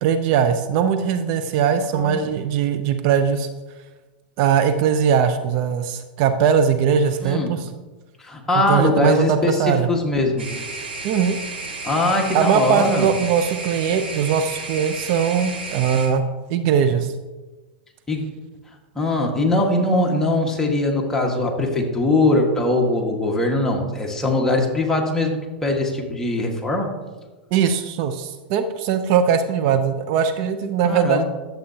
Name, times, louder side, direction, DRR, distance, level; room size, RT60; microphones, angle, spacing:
voice 1, 0.0-3.5 4.4-7.7 8.7-9.9 11.0-11.4 12.3-16.2 16.5-17.1 27.5-31.2, right 7 dB, 50° right, 8 dB, 0.6 m, -20 dB
voice 2, 1.9-2.2 7.2-7.5 8.2-10.5 11.8-13.1 18.1-18.3 18.9-26.9 30.8-31.2, left 2 dB, 10° left, -1 dB, 1.6 m, -21 dB
sound 1, 10.4-16.1, right 3 dB, 90° right, 2.4 m, -32 dB
11.5 x 7.6 x 2.8 m, 1.2 s
hypercardioid pair, 110°, 6 cm